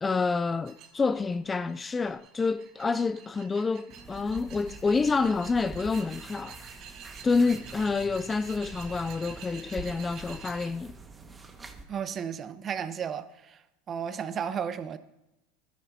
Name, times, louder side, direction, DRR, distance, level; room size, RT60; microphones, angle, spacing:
voice 1, 0.0-6.6 7.2-10.9, left 4 dB, 20° left, 0.3 m, -28 dB
sound 1, 0.7-10.7, right 7 dB, 50° right, 2.2 m, -48 dB
sound 2, 3.9-11.8, right 3 dB, 20° right, 1.6 m, -46 dB
voice 2, 11.9-13.6 13.9-15.0, right 7 dB, 35° right, 1.0 m, -33 dB
20.5 x 13.0 x 2.8 m
hypercardioid pair, 95°, 0 cm